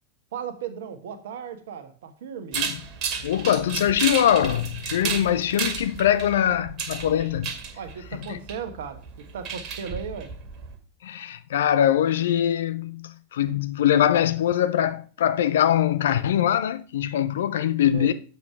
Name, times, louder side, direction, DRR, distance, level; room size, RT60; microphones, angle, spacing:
voice 1, 0.3-2.6 7.7-10.3 17.9-18.1, right 7 dB, 55° right, 1.2 m, -36 dB
sound 1, 2.5-10.8, right 6 dB, 35° right, 1.9 m, -33 dB
voice 2, 3.2-7.5 8.3-8.4 11.0-18.1, left 10 dB, 60° left, 0.6 m, -22 dB
7.6 x 5.8 x 4.6 m
figure-of-eight pair, 90°, 0 cm